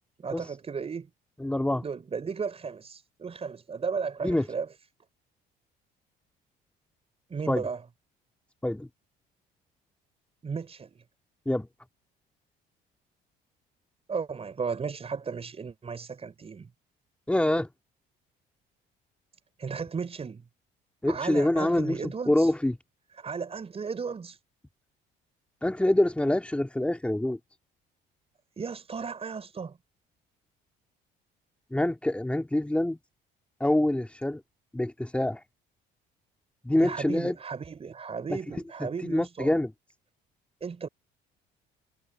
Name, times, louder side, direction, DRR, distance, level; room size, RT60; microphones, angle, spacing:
voice 1, 0.2-1.1 1.8-4.7 7.3-7.8 10.4-11.0 14.1-16.7 19.6-20.4 21.1-22.5 23.2-24.4 28.6-29.8 36.8-39.5 40.6-40.9, right 5 dB, 30° right, 5.4 m, -35 dB
voice 2, 1.4-1.8 4.2-4.5 7.5-7.6 8.6-8.9 11.5-11.7 17.3-17.7 21.0-22.7 25.6-27.4 31.7-33.0 33.6-34.4 34.7-35.4 36.6-37.4 38.3-38.4 38.8-39.7, left 1 dB, 5° left, 2.7 m, -26 dB
cardioid pair, 100°, 19 cm